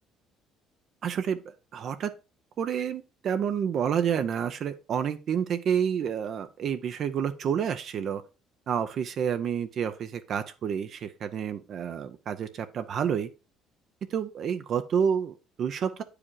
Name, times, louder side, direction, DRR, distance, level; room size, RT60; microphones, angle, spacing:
voice 1, 1.0-1.4 1.7-2.1 2.6-8.2 8.7-13.3 14.1-16.0, right 8 dB, 50° right, 9 dB, 0.6 m, -29 dB
8.6 x 5.0 x 4.6 m, 0.30 s
cardioid pair, 125°, 0 cm